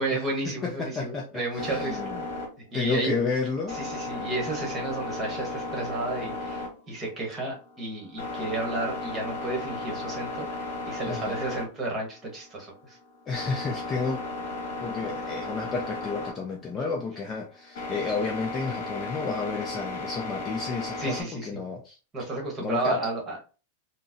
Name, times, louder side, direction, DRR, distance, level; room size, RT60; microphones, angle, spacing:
voice 1, 0.0-2.0 2.7-3.2 3.7-13.0 21.0-21.5 22.1-23.4, right 2 dB, 15° right, -1 dB, 1.0 m, -32 dB
voice 2, 0.6-1.3 1.5-2.2 2.7-3.8 11.1-11.4 13.3-14.2 14.8-22.0 22.6-23.0, left 4 dB, 15° left, 0 dB, 0.4 m, -31 dB
sound 1, 1.6-21.2, left 2 dB, 55° left, 1.3 m, -36 dB
3.9 x 2.0 x 2.5 m, 0.34 s
supercardioid pair, 170°, 0 cm